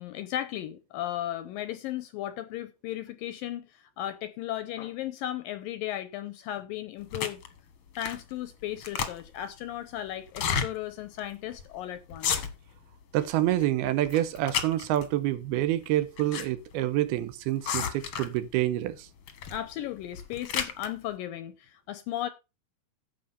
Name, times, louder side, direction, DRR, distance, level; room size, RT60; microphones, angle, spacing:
voice 1, 0.0-7.4 8.0-12.5 19.5-22.3, left 12 dB, 80° left, 2.1 m, -36 dB
sound 1, 7.1-7.5 7.9-8.3 8.6-9.4 10.3-10.7 11.2-11.3 11.5-11.7 12.1-12.8 13.2-13.7 14.0-15.1 15.9-16.5 16.7-16.8 17.6-18.4 19.3-19.6 20.0-20.9, left 7 dB, 60° left, 1.6 m, -32 dB
voice 2, 13.1-19.1, right 13 dB, 80° right, 2.7 m, -27 dB
10.5 x 7.3 x 5.5 m
omnidirectional pair, 4.6 m